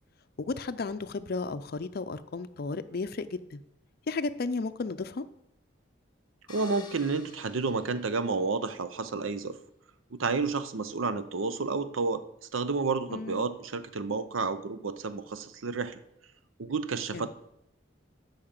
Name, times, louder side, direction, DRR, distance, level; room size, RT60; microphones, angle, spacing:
voice 1, 0.4-3.6 4.1-5.2 13.1-13.5 17.1-17.3, left 3 dB, 50° left, 12 dB, 0.5 m, -34 dB
sound 1, 6.5-8.7, left 4 dB, 20° left, 1.2 m, -51 dB
voice 2, 6.5-9.6 10.1-12.2 12.5-16.0 16.6-17.3, right 4 dB, 75° right, 12 dB, 0.6 m, -30 dB
8.7 x 5.8 x 7.4 m, 0.81 s
head